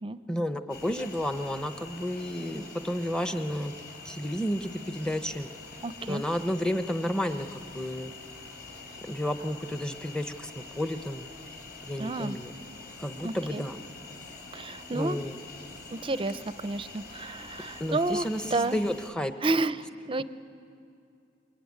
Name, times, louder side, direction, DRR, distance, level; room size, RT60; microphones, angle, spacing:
voice 1, 0.3-3.7 4.0-5.5 6.1-8.1 9.0-11.3 11.8-12.5 13.0-13.8 14.9-15.4 17.8-19.3, equal, 5° left, 8 dB, 0.9 m, -31 dB
sound 1, 0.7-19.1, left 3 dB, 65° left, 3.6 m, -45 dB
voice 2, 5.8-6.2 12.0-12.4 13.2-13.6 14.5-15.2 15.9-18.8 19.4-20.2, right 2 dB, 30° right, 14 dB, 0.6 m, -31 dB
27.5 x 22.0 x 9.6 m, 2.5 s
head